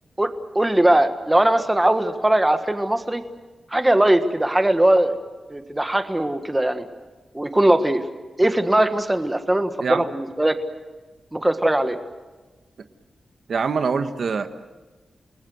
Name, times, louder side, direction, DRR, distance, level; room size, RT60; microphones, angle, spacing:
voice 1, 0.2-3.2 3.7-5.2 5.5-6.9 7.3-8.0 8.4-10.6 11.3-12.0, right 1 dB, 10° right, 8 dB, 1.5 m, -20 dB
voice 2, 13.5-14.5, right 5 dB, 65° right, 9 dB, 1.3 m, -23 dB
29.5 x 20.5 x 7.9 m, 1.3 s
wide cardioid pair, 145°, 0 cm